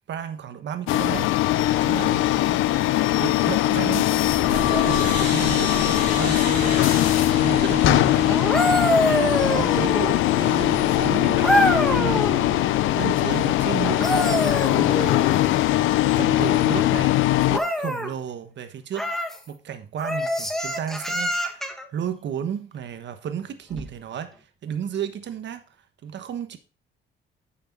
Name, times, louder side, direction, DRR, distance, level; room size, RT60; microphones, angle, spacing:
voice 1, 0.1-1.4 1.8-2.7 3.1-4.1 4.5-8.5 9.0-11.6 11.9-12.6 12.9-15.7 16.0-19.1 19.5-21.6 21.9-25.6 26.0-26.6, right 8 dB, 65° right, 1.3 m, -33 dB
sound 1, 0.9-17.6, left 15 dB, 85° left, 0.5 m, -21 dB
sound 2, 4.2-12.7, left 3 dB, 40° left, 4.5 m, -31 dB
sound 3, 8.3-10.3 11.4-12.4 13.8-15.4 17.5-18.1 18.9-19.4 20.0-21.8 23.7-23.9, equal, ahead, 1.5 m, -24 dB
9.2 x 6.6 x 3.8 m
cardioid pair, 90°, 20 cm